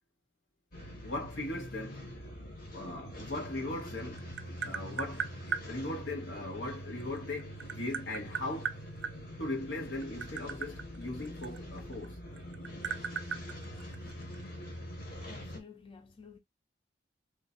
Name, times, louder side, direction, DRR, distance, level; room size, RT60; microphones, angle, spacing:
sound 1, 0.7-15.6, equal, 55° left, 1.1 m, -44 dB
voice 1, 1.0-2.0 2.7-5.3 5.7-8.7 9.4-12.2 15.1-15.2, left 2 dB, 90° left, 1.6 m, -39 dB
Tap, 3.8-5.7 7.0-9.1 9.9-12.1 12.4-14.4, right 7 dB, 70° right, 0.4 m, -37 dB
voice 2, 15.3-16.4, left 5 dB, 30° left, 0.4 m, -51 dB
3.1 x 2.3 x 3.8 m
head